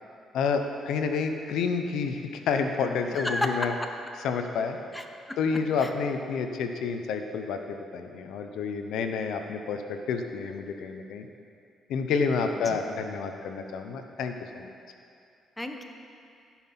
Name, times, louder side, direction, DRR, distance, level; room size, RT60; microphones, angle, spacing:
voice 1, 0.3-2.2 2.5-3.7 4.2-4.8 5.4-11.3 11.9-14.7, left 5 dB, 85° left, 6 dB, 0.7 m, -29 dB
voice 2, 3.1-3.7 4.9-5.9 12.6-12.8 15.6-15.8, left 1 dB, 10° left, 4 dB, 1.0 m, -33 dB
14.5 x 5.8 x 5.9 m, 2.4 s
cardioid pair, 90°, 0 cm